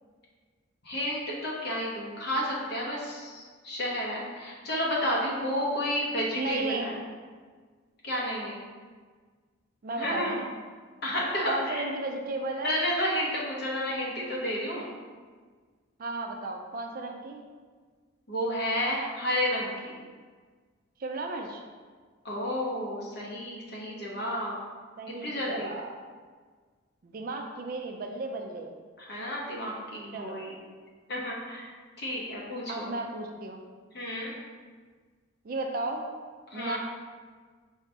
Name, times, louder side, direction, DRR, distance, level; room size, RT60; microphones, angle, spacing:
voice 1, 0.8-6.9 8.0-8.6 10.0-10.3 11.0-11.9 12.6-14.9 18.3-19.9 22.2-24.6 25.2-25.7 29.0-30.6 31.1-31.7 32.0-32.9 33.9-34.3 36.5-36.8, equal, 50° left, -4 dB, 1.0 m, -31 dB
voice 2, 6.3-6.9 9.8-10.5 11.4-12.8 16.0-17.4 21.0-21.6 25.0-25.9 27.0-28.8 30.1-30.4 32.7-33.6 35.4-36.1 36.5-36.8, right 2 dB, 40° right, 3 dB, 0.3 m, -34 dB
4.8 x 2.8 x 3.4 m, 1.5 s
head